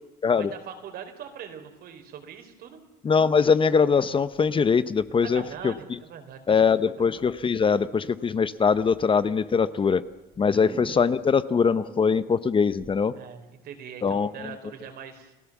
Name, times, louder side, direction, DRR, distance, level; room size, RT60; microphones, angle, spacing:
voice 1, 0.3-2.8 5.2-6.8 10.5-10.7 13.1-15.3, right 7 dB, 65° right, 6 dB, 4.2 m, -42 dB
voice 2, 3.0-5.7 6.5-10.0 10.4-13.1 14.0-14.5, left 5 dB, 30° left, 14 dB, 0.9 m, -22 dB
sound 1, 5.0-6.2 7.2-7.7 8.2-9.0 9.6-13.0, right 3 dB, 30° right, 3.2 m, -47 dB
29.5 x 16.5 x 7.3 m, 1.1 s
cardioid pair, 110°, 17 cm